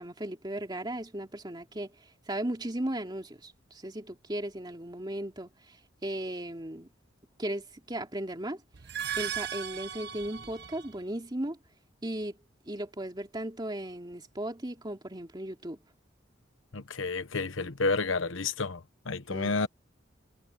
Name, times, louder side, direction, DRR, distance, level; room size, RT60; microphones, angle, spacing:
voice 1, 0.0-1.9 2.3-5.8 6.0-6.9 7.4-8.6 9.2-11.6 12.0-12.4 12.7-15.8 19.3-19.6, right 1 dB, 20° right, 2.8 m, -36 dB
sound 1, 8.7-11.0, right 9 dB, 55° right, 0.8 m, -37 dB
voice 2, 16.7-19.7, left 3 dB, 75° left, 1.1 m, -30 dB
head